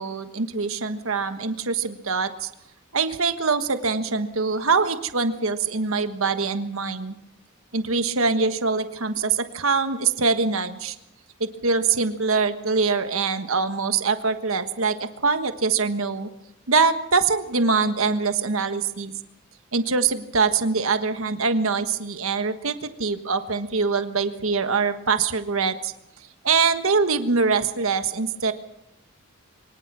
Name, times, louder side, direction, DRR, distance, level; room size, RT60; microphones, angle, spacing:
voice 1, 0.0-2.5 2.9-7.2 7.7-10.9 11.4-16.3 16.7-19.1 19.7-25.9 26.4-28.5, right 4 dB, 80° right, 9 dB, 1.4 m, -23 dB
23.5 x 19.0 x 6.2 m, 0.81 s
head